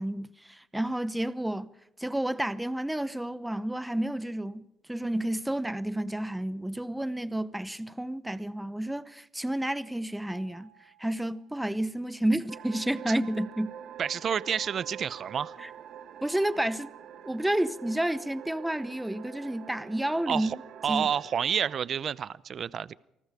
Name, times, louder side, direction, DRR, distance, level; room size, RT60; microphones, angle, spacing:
voice 1, 0.0-1.7 2.0-4.6 4.9-10.7 11.0-13.8 15.6-15.7 16.2-16.9 17.2-20.6 20.9-21.1, right 1 dB, 5° right, 0.9 m, -30 dB
Mallet percussion, 10.3-12.3, right 2 dB, 20° left, 6.2 m, -60 dB
sound 1, 12.5-21.8, right 9 dB, 65° right, 1.5 m, -46 dB
voice 2, 14.0-15.5 20.3-20.6 20.8-23.0, right 8 dB, 45° right, 0.7 m, -29 dB
28.0 x 20.0 x 4.9 m
cardioid pair, 115°, 0 cm